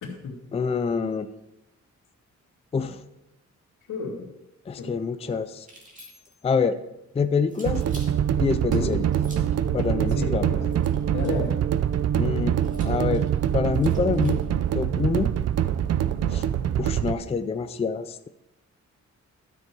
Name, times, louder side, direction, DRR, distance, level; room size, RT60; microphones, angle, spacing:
voice 1, 0.0-0.4 2.7-2.9 3.9-4.3 4.8-5.0 8.7-9.0 10.1-10.7 11.1-11.5, left 4 dB, 90° left, -1 dB, 2.6 m, -32 dB
voice 2, 0.5-1.3 2.7-3.0 4.7-5.7 6.4-6.8 7.1-7.8 8.4-9.1 9.7-10.6 12.2-12.6 12.8-13.3 13.5-14.4 14.7-15.3 16.3-16.5 16.8-18.3, left 5 dB, 20° left, 10 dB, 0.4 m, -26 dB
picking up keys, 5.6-6.5 7.5-8.2 9.1-9.6 10.7-11.5 12.6-14.5, equal, 25° right, 2.3 m, -49 dB
Wild Hunter, 7.6-17.1, right 10 dB, 60° right, 0.5 m, -24 dB
12.0 x 6.8 x 4.7 m, 0.91 s
wide cardioid pair, 140°, 29 cm